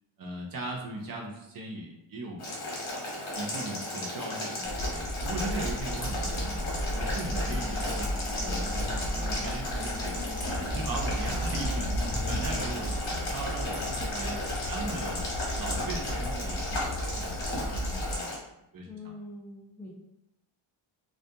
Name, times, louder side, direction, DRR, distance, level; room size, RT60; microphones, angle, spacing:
voice 1, 0.2-2.5 3.3-6.6 6.9-8.1 8.4-10.2 10.5-12.0 12.2-14.4 14.7-15.2 15.5-17.4 17.7-18.4 18.7-19.1, right 2 dB, 45° right, 0 dB, 0.5 m, -38 dB
Boiling, 2.4-18.3, left 1 dB, 85° left, 1.1 m, -35 dB
sound 1, 4.6-18.2, equal, 55° left, 0.7 m, -34 dB
sound 2, 5.8-17.6, left 1 dB, 25° left, 0.8 m, -41 dB
voice 2, 13.5-14.4 18.8-19.9, left 1 dB, 5° left, -5 dB, 0.4 m, -44 dB
2.4 x 2.2 x 2.6 m, 0.85 s
wide cardioid pair, 120°, 49 cm